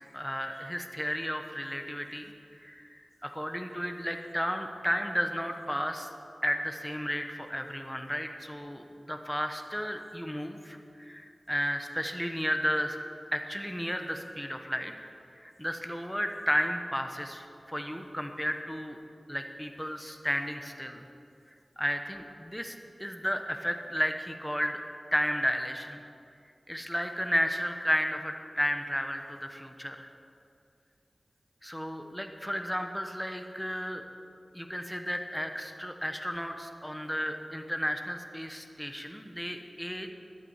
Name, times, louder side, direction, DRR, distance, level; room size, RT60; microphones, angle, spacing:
voice 1, 0.1-6.1 6.4-13.0 13.3-15.1 15.4-19.0 19.3-21.1 21.8-24.8 25.1-26.0 26.7-30.1 31.6-34.0 34.5-40.1, equal, 5° left, 5 dB, 1.1 m, -33 dB
12.0 x 8.4 x 8.1 m, 2.5 s
wide cardioid pair, 60°, 0 cm